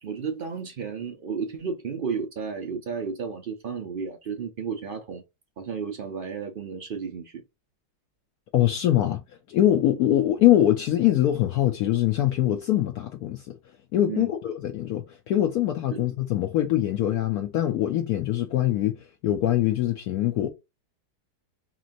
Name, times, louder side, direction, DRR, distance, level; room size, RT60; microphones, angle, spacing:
voice 1, 0.0-5.2 5.6-7.4 14.1-14.3 15.9-16.0, right 6 dB, 75° right, 0.4 m, -33 dB
voice 2, 8.5-9.2 9.5-13.5 13.9-19.0 19.2-20.5, left 12 dB, 70° left, 1.0 m, -23 dB
4.9 x 3.0 x 2.5 m
omnidirectional pair, 1.8 m